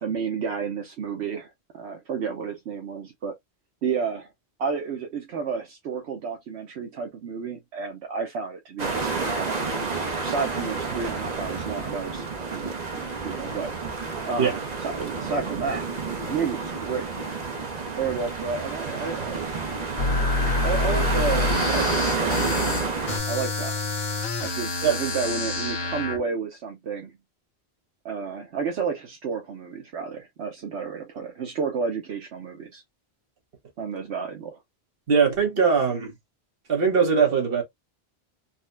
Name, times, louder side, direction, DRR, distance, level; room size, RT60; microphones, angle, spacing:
voice 1, 0.0-3.3 3.8-4.3 4.6-9.7 10.2-12.7 13.2-14.0 14.2-15.8 16.3-17.3 18.0-19.5 20.2-20.3 20.6-23.7 24.4-27.2 28.0-32.8 33.8-34.6, right 5 dB, 75° right, 1.0 m, -31 dB
sound 1, 8.8-23.2, right 4 dB, 45° right, 0.9 m, -29 dB
sound 2, 20.0-26.2, left 3 dB, 70° left, 1.1 m, -27 dB
voice 2, 35.1-36.1 36.7-37.6, right 6 dB, 60° right, 1.3 m, -21 dB
4.0 x 2.1 x 2.5 m
omnidirectional pair, 1.1 m